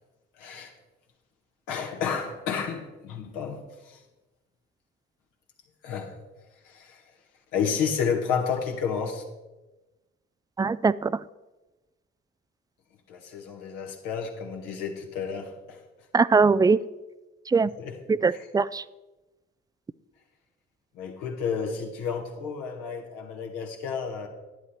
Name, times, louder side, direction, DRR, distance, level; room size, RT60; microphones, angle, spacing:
voice 1, 0.4-0.7 1.7-4.0 5.8-6.1 6.6-7.0 7.5-9.2 13.1-15.8 17.7-18.0 18.3-18.5 20.9-24.3, left 6 dB, 70° left, 2 dB, 1.7 m, -31 dB
voice 2, 10.6-11.2 16.1-16.8 17.5-17.7 18.1-18.8, right 4 dB, 10° right, 18 dB, 0.3 m, -21 dB
11.0 x 10.0 x 4.3 m, 1.1 s
hypercardioid pair, 45°, 33 cm